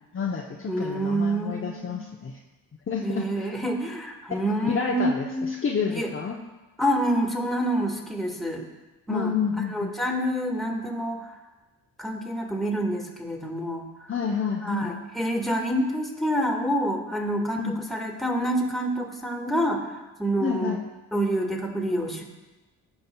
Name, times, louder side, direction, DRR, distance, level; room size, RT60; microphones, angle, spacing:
voice 1, 0.1-2.4 2.9-3.5 4.6-6.4 9.1-9.9 14.1-15.0 17.6-17.8 20.4-20.8, left 6 dB, 30° left, -1 dB, 0.8 m, -29 dB
voice 2, 0.7-2.0 3.0-5.5 5.9-6.1 6.8-8.6 9.1-9.3 9.7-11.3 12.0-13.9 14.6-19.9 20.2-20.7 21.1-22.2, right 1 dB, ahead, 1 dB, 1.6 m, -27 dB
15.5 x 5.3 x 2.3 m, 1.1 s
hypercardioid pair, 45°, 44 cm